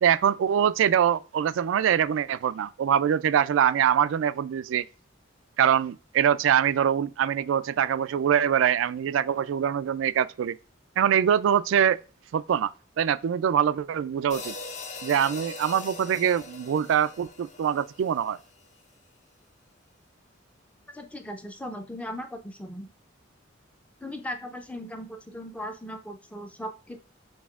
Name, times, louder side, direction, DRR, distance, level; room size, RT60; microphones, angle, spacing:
voice 1, 0.0-4.8 5.6-10.6 11.0-12.0 12.3-14.6 15.0-18.4, right 9 dB, 80° right, 0.3 m, -24 dB
sound 1, 14.3-18.7, left 3 dB, 40° left, 0.7 m, -41 dB
voice 2, 20.9-22.9 24.0-27.0, equal, 5° left, 0.5 m, -38 dB
6.2 x 3.3 x 2.4 m
head